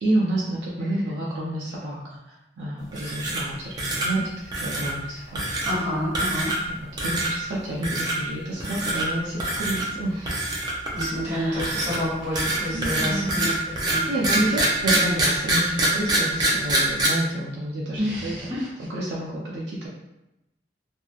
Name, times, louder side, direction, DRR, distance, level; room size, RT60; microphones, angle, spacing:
voice 1, 0.0-4.3 4.6-5.4 7.0-10.6 11.2-11.9 12.7-13.5 14.1-18.6 18.9-19.9, right 1 dB, 90° right, -6 dB, 0.5 m, -29 dB
sound 1, 2.9-3.5 3.8-4.1 4.5-4.9 5.4-5.7 6.1-6.7 7.0-7.3 7.8-8.2 8.6-9.1 9.4-9.9 10.3-11.2 11.6-17.1, right 1 dB, 25° right, 0.5 m, -25 dB
voice 2, 5.6-6.5 10.9-14.0 14.3-14.5 15.0-15.1 18.0-18.7, equal, 45° right, -9 dB, 1.5 m, -29 dB
2.6 x 2.3 x 2.4 m, 0.94 s
head